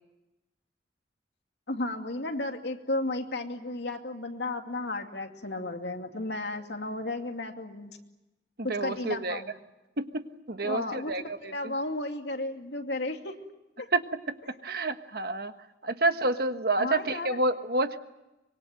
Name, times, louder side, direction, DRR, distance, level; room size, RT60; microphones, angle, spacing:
voice 1, 1.7-8.0 8.6-9.5 10.6-13.3 13.8-13.9 16.8-17.3, left 2 dB, 75° left, 4 dB, 2.5 m, -33 dB
voice 2, 8.6-9.4 10.0-11.7 13.9-14.0 14.6-15.5 15.8-18.0, right 2 dB, 60° right, 8 dB, 1.4 m, -29 dB
25.0 x 22.5 x 9.0 m, 1.0 s
head